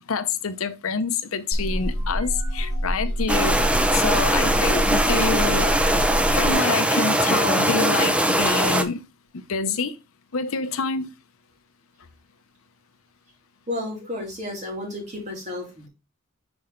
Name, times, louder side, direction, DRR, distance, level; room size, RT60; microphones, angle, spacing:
voice 1, 0.1-5.8 6.3-9.0 9.3-10.0 10.3-11.1, left 5 dB, 75° left, 0.7 m, -27 dB
sound 1, 1.5-6.5, equal, 90° right, 1.4 m, -26 dB
sound 2, 3.3-8.8, right 1 dB, 5° right, 0.5 m, -21 dB
voice 2, 13.7-15.9, left 1 dB, 35° right, 2.6 m, -32 dB
6.2 x 4.2 x 3.7 m
head